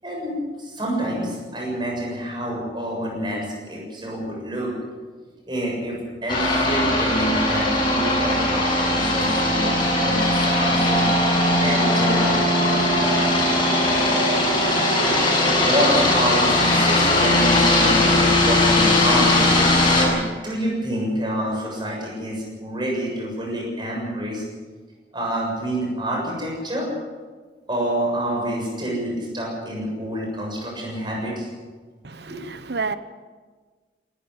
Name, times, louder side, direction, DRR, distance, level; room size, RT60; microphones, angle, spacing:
voice 1, 0.0-4.7 5.5-11.3 11.6-12.2 15.0-24.4 25.1-26.9 27.7-31.5 32.2-32.5, right 1 dB, 25° right, -1 dB, 7.1 m, -27 dB
sound 1, 6.3-20.1, left 1 dB, 25° left, 7.0 m, -19 dB
voice 2, 32.0-33.0, right 4 dB, 70° right, 13 dB, 1.1 m, -29 dB
18.5 x 14.5 x 9.7 m, 1.5 s
head